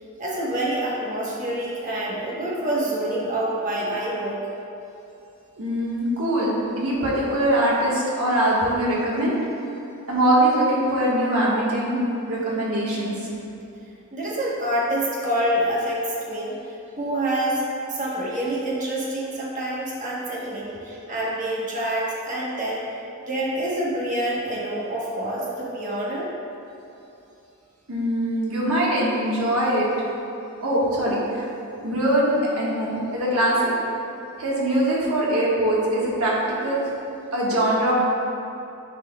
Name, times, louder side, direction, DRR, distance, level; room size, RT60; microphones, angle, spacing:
voice 1, 0.2-4.4 14.1-17.6 17.9-22.8 23.2-26.3, right 1 dB, 35° right, -5 dB, 1.1 m, -27 dB
voice 2, 5.6-9.3 10.1-12.0 12.3-13.1 27.9-29.9 30.6-31.5 31.8-33.7 34.4-36.3 36.6-36.9 37.3-37.9, right 1 dB, 75° right, -6 dB, 1.4 m, -22 dB
10.5 x 4.2 x 2.3 m, 2.8 s
head